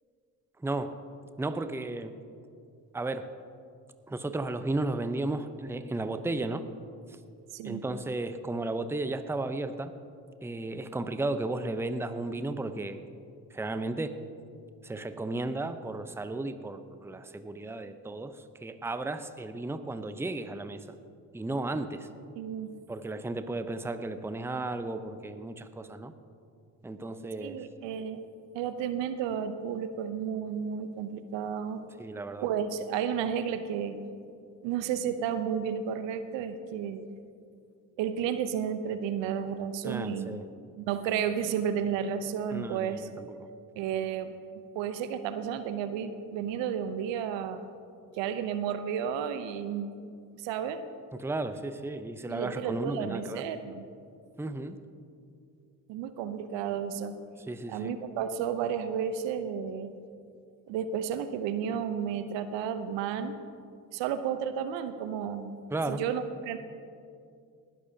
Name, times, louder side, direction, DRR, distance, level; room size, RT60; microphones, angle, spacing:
voice 1, 0.6-0.9 1.4-2.1 2.9-3.3 4.1-6.6 7.6-9.9 10.4-13.0 13.5-14.2 14.8-20.9 21.3-22.1 22.9-26.1 26.8-27.6 32.0-32.5 39.8-40.5 42.5-43.4 51.1-53.4 54.4-54.8 57.4-57.9 65.7-66.0, right 2 dB, 5° right, 10 dB, 0.7 m, -34 dB
voice 2, 7.5-7.8 22.4-22.7 27.4-28.2 28.5-31.8 32.4-34.0 34.6-37.0 38.0-40.3 40.8-43.1 43.8-44.4 44.7-47.6 48.1-50.1 50.4-50.8 52.3-53.8 55.9-57.2 57.7-59.9 60.7-63.4 63.9-65.5 65.9-66.6, right 8 dB, 65° right, 10 dB, 0.9 m, -32 dB
19.5 x 13.5 x 2.8 m, 2.4 s
hypercardioid pair, 45°, 46 cm